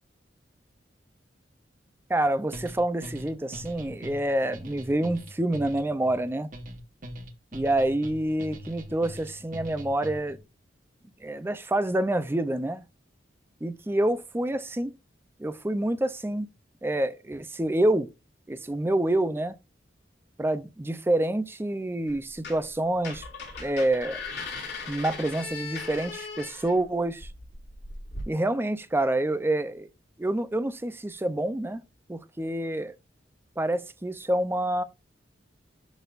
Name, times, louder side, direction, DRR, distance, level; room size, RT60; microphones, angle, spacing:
voice 1, 2.1-6.5 7.5-10.4 11.2-12.8 13.6-14.9 15.4-16.5 16.8-18.1 18.5-19.5 20.4-23.2 23.6-24.2 24.9-27.3 28.3-29.9 30.2-31.8 32.1-32.9 33.6-34.8, right 1 dB, 10° right, 0.5 m, -27 dB
sound 1, 2.5-10.4, equal, 45° right, 1.3 m, -42 dB
sound 2, 22.1-22.7 23.0-28.2, left 4 dB, 60° left, 4.2 m, -38 dB
12.0 x 4.1 x 2.5 m
head